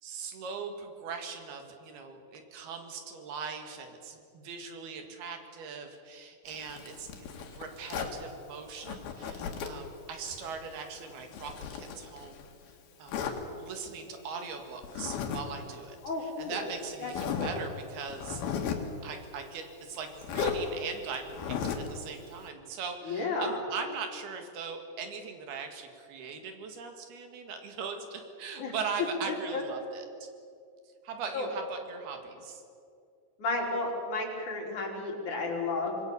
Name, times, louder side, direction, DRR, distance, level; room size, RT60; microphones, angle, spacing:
voice 1, 0.0-12.5 13.0-13.2 13.6-18.8 19.0-30.3 31.0-32.6, right 5 dB, 85° right, 5 dB, 4.1 m, -40 dB
Zipper (clothing), 6.5-8.2 8.8-9.9 10.2-12.5 13.1-13.4 14.8-15.4 15.7-15.8 16.5-16.6 17.1-17.6 18.1-18.9 20.2-20.6 21.3-21.9, left 7 dB, 75° left, 3.7 m, -35 dB
voice 2, 16.0-16.7 17.0-17.6 23.1-23.6 28.6-28.7 29.3-29.6 31.3-31.5 33.4-36.0, left 3 dB, 55° left, 0 dB, 4.7 m, -33 dB
26.0 x 21.0 x 7.0 m, 2.4 s
omnidirectional pair, 4.4 m